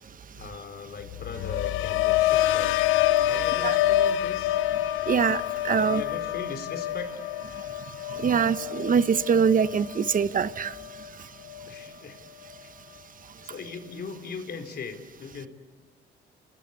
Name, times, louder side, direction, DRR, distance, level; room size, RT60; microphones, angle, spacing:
voice 1, 0.3-2.8 3.2-4.6 5.8-7.1 11.6-12.2 12.6-12.7 13.4-15.5, left 5 dB, 55° left, 7 dB, 4.1 m, -39 dB
sound 1, 1.0-11.1 11.4-11.9, left 13 dB, 90° left, 0.8 m, -27 dB
voice 2, 5.1-6.0 8.2-10.7, right 6 dB, 45° right, 15 dB, 1.0 m, -23 dB
30.0 x 19.5 x 8.3 m, 1.4 s
cardioid pair, 90°, 20 cm